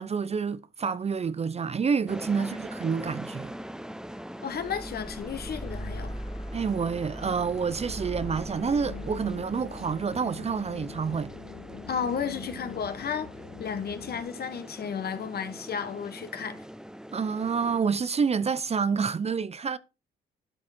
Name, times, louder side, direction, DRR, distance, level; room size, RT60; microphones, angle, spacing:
voice 1, 0.0-3.5 6.5-11.3 17.1-19.8, right 6 dB, 30° right, 0.6 m, -28 dB
sound 1, 2.1-17.8, equal, 5° right, 0.8 m, -43 dB
voice 2, 4.4-6.2 11.9-13.3 13.6-16.6, left 7 dB, 55° left, 1.6 m, -33 dB
sound 2, 4.5-12.8, equal, 20° left, 1.4 m, -41 dB
sound 3, 8.6-14.2, left 9 dB, 70° left, 1.4 m, -45 dB
11.5 x 6.1 x 4.4 m
cardioid pair, 90°, 20 cm